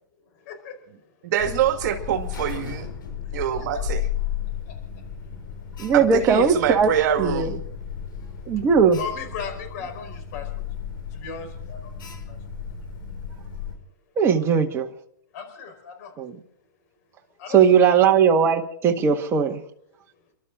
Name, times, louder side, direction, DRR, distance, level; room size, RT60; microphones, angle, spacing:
voice 1, 0.4-0.8 3.2-3.4 4.4-4.8 5.3-5.4 8.0-8.7 9.0-10.7 11.1-12.4 15.3-16.1 17.4-17.6 18.0-18.1, left 6 dB, 50° left, 6 dB, 4.6 m, -37 dB
voice 2, 1.2-2.9 3.3-4.1 5.9-7.6, right 10 dB, 60° right, 5 dB, 2.2 m, -25 dB
Alarm, 1.4-13.7, left 8 dB, 80° left, 7.4 m, -34 dB
voice 3, 5.8-6.9 7.2-7.6 8.5-9.0 14.2-14.9 16.2-16.4 17.5-19.6, right 6 dB, 25° right, 3 dB, 1.7 m, -18 dB
29.5 x 12.5 x 3.9 m, 0.65 s
hypercardioid pair, 140°, 11 cm